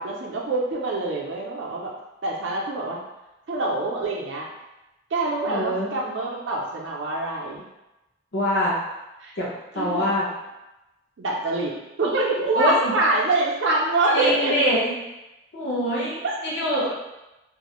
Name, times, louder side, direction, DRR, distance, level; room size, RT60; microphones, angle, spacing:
voice 1, 0.0-1.9 2.2-3.0 3.5-4.5 5.1-7.6 9.2-9.3 9.8-10.2 11.2-14.6 16.2-16.3 16.7-16.9, right 2 dB, 70° right, -2 dB, 0.4 m, -25 dB
voice 2, 5.5-5.9 8.3-8.7 9.4-9.5 9.7-10.3 12.6-12.9 14.1-14.9 15.5-16.9, equal, 65° left, -5 dB, 0.7 m, -24 dB
2.3 x 2.0 x 2.9 m, 0.99 s
head